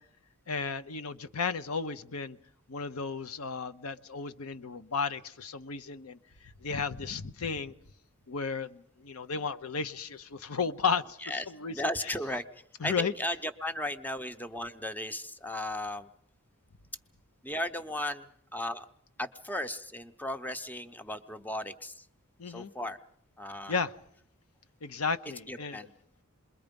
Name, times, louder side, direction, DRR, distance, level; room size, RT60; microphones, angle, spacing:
voice 1, 0.5-2.4 2.7-6.2 6.6-7.7 8.3-11.2 11.5-11.7 12.8-13.1 22.4-22.7 23.7-23.9 24.8-25.8, left 5 dB, 80° left, 0.8 m, -33 dB
voice 2, 11.7-12.4 12.8-16.1 17.4-18.9 19.2-22.0 22.5-23.0 23.4-23.8 25.5-25.9, left 1 dB, 10° left, 0.8 m, -35 dB
28.0 x 22.0 x 5.3 m
head